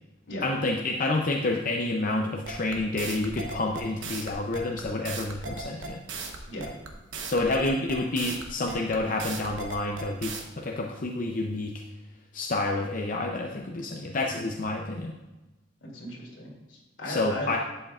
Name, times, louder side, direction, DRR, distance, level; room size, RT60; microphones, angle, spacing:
voice 1, 0.4-6.0 7.2-11.8 12.3-15.1 17.1-17.6, left 2 dB, 45° left, 1 dB, 0.6 m, -29 dB
sound 1, 2.4-10.4, right 4 dB, 85° right, 1.0 m, -37 dB
voice 2, 15.8-17.5, left 1 dB, 75° left, -2 dB, 2.7 m, -37 dB
11.0 x 7.7 x 2.4 m, 1.1 s
head